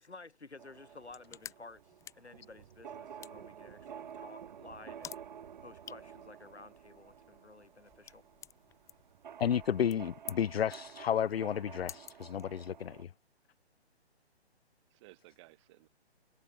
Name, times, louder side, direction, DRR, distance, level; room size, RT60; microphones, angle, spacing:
voice 1, 0.0-5.2 5.6-8.2, left 3 dB, 80° left, 4.7 m, -53 dB
sound 1, 0.6-13.0, right 8 dB, 45° right, 0.6 m, -51 dB
sound 2, 0.9-13.0, left 10 dB, 10° left, 1.2 m, -53 dB
voice 2, 9.4-13.1, left 9 dB, 65° left, 0.5 m, -32 dB
voice 3, 14.9-15.9, right 20 dB, 25° right, 3.3 m, -59 dB
figure-of-eight pair, 140°, 33 cm